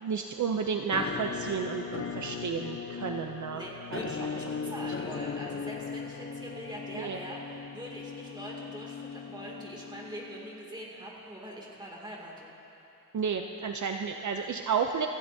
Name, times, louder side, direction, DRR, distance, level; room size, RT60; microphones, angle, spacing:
voice 1, 0.0-3.6 3.9-4.0 6.9-7.2 13.1-15.1, right 6 dB, 55° right, 4 dB, 0.6 m, -31 dB
Musical instrument, 0.9-10.7, left 6 dB, 40° left, 0.6 m, -38 dB
voice 2, 3.5-12.5, equal, 15° right, -3 dB, 2.4 m, -43 dB
26.0 x 15.5 x 2.7 m, 3.0 s
wide cardioid pair, 170°, 35 cm